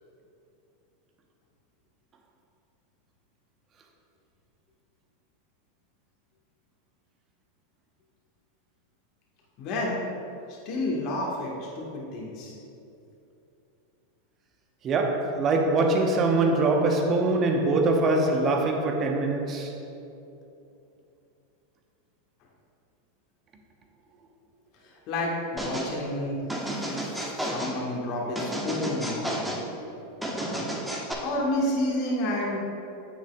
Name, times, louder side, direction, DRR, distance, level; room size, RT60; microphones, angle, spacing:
voice 1, 9.6-10.0 10.5-12.5 24.8-26.9 27.4-29.4 30.2-30.7 31.2-32.6, left 1 dB, 50° left, 1.5 m, -30 dB
voice 2, 14.8-19.8, right 2 dB, 35° right, 1.0 m, -23 dB
sound 1, 25.6-25.9 26.5-27.8 28.3-29.6 30.2-31.1, right 1 dB, 5° right, 1.2 m, -32 dB
8.9 x 7.1 x 2.4 m
hypercardioid pair, 95°, 0 cm